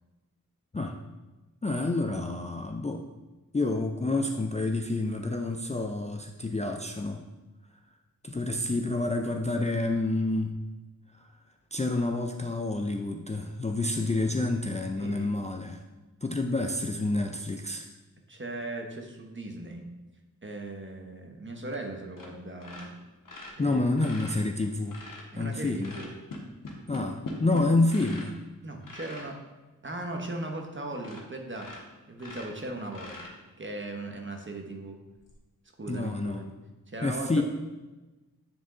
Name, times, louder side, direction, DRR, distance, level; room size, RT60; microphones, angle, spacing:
voice 1, 1.6-3.0 3.5-7.2 8.2-10.6 11.1-11.3 11.7-15.8 16.2-17.9 23.6-25.0 25.4-26.0 26.9-28.4 35.9-36.4 37.0-37.4, left 2 dB, 20° left, 3 dB, 0.4 m, -28 dB
voice 2, 15.0-15.3 18.3-19.9 20.4-22.9 23.6-23.9 25.3-26.1 28.6-29.4 29.8-31.8 32.1-35.0 35.8-36.5 36.9-37.4, right 2 dB, 35° right, 3 dB, 1.0 m, -38 dB
sound 1, 22.2-22.3 22.6-25.3 25.8-28.3 28.8-29.3 29.9-30.0 30.4-30.5 31.0-31.3 31.5-33.7 35.2-35.3, left 2 dB, 65° left, 1.3 m, -42 dB
8.9 x 3.5 x 3.8 m, 1.1 s
wide cardioid pair, 50°, 35 cm